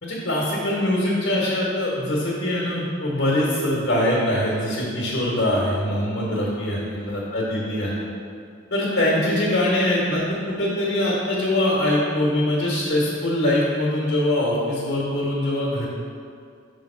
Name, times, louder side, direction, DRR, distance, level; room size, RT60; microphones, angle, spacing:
voice 1, 0.0-8.1 8.7-15.9, left 1 dB, 55° left, -5 dB, 1.1 m, -23 dB
5.2 x 3.5 x 5.4 m, 2.4 s
head